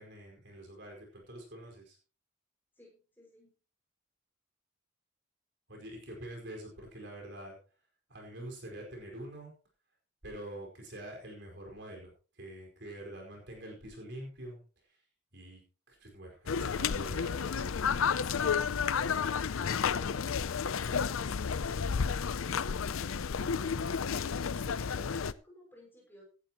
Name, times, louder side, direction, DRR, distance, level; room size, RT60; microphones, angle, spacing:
voice 1, 0.0-2.0 5.7-7.6 8.1-9.5 10.2-14.6 14.9-15.0 15.3-15.6 15.9-17.7, right 1 dB, 55° right, 1 dB, 5.0 m, -46 dB
voice 2, 2.7-3.5 25.0-26.2, equal, 10° left, -2 dB, 6.0 m, -57 dB
sound 1, 16.5-25.3, left 6 dB, 85° left, 0.6 m, -31 dB
17.0 x 11.5 x 3.0 m, 0.34 s
head